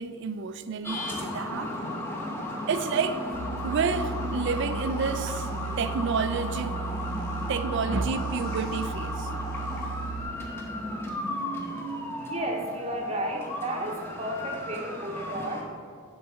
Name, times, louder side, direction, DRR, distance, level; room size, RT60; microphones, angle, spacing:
voice 1, 0.0-1.7 2.7-3.2 3.6-5.5 5.8-6.7 7.5-9.3, right 5 dB, 55° right, 11 dB, 0.4 m, -29 dB
sound 1, 0.8-15.6, left 1 dB, 10° left, 0.9 m, -35 dB
sound 2, 3.3-10.2, right 5 dB, 85° left, 1.5 m, -35 dB
voice 2, 11.0-15.7, right 1 dB, 30° right, 1 dB, 0.8 m, -34 dB
7.7 x 4.0 x 6.8 m, 2.1 s
head